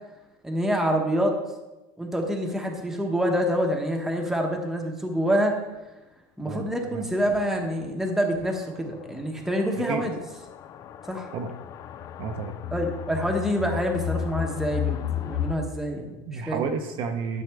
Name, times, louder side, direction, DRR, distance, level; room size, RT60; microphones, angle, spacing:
voice 1, 0.4-1.4 2.0-5.5 6.4-10.2 11.1-11.3 12.7-16.6, equal, 5° right, 1 dB, 1.0 m, -26 dB
voice 2, 6.5-7.1 9.7-10.1 11.3-11.5 12.2-12.5 16.3-17.4, right 5 dB, 45° right, 5 dB, 0.8 m, -31 dB
sound 1, 7.3-7.4 7.8-7.9 8.4-8.5 9.4-15.6, left 9 dB, 30° left, 0.4 m, -33 dB
11.5 x 6.3 x 3.5 m, 1.1 s
cardioid pair, 155°, 12 cm